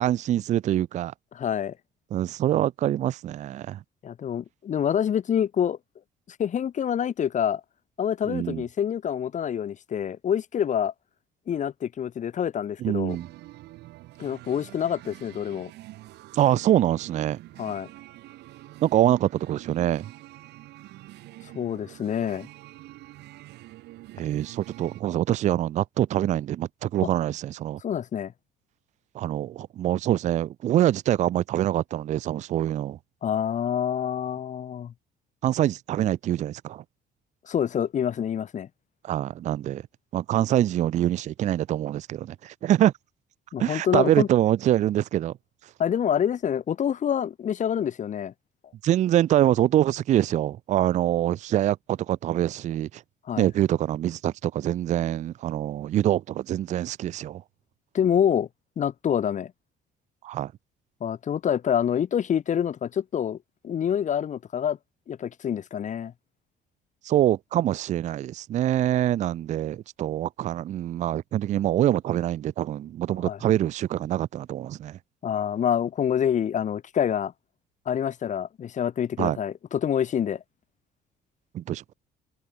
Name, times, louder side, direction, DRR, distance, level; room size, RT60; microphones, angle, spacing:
voice 1, 0.0-1.1 2.1-3.8 8.3-8.6 12.8-13.3 16.3-17.4 18.8-20.1 24.1-27.8 29.1-33.0 35.4-36.8 39.0-39.8 40.1-42.9 43.6-45.3 48.8-53.0 53.4-57.4 60.2-60.5 67.0-75.0 79.2-79.4 81.5-81.8, right 12 dB, 45° right, 0.4 m, -25 dB
voice 2, 1.3-1.8 4.0-5.8 6.4-7.6 8.0-10.9 11.5-13.2 14.2-15.7 17.6-17.9 21.5-22.5 27.0-27.1 27.8-28.3 33.2-34.9 37.5-38.7 43.5-44.3 45.8-48.3 53.3-53.5 57.9-58.5 58.8-59.5 61.0-63.4 63.6-64.8 65.1-66.1 73.2-73.4 75.2-77.3 77.9-80.4, left 9 dB, 45° left, 2.2 m, -26 dB
sound 1, 13.1-25.0, right 17 dB, 85° right, 4.5 m, -46 dB
cardioid pair, 110°, 17 cm